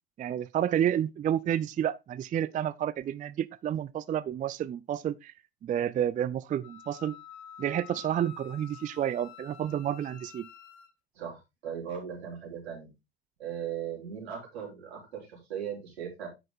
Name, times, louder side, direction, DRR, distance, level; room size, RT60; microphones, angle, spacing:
voice 1, 0.2-5.3 5.6-7.2 7.6-10.5, right 10 dB, 25° right, 0.4 m, -30 dB
Wind instrument woodwind instrument, 6.6-10.9, left 10 dB, 55° left, 1.4 m, -49 dB
voice 2, 11.2-12.9 13.4-16.3, right 8 dB, 80° right, 4.0 m, -38 dB
9.9 x 5.3 x 3.6 m
hypercardioid pair, 70°, 32 cm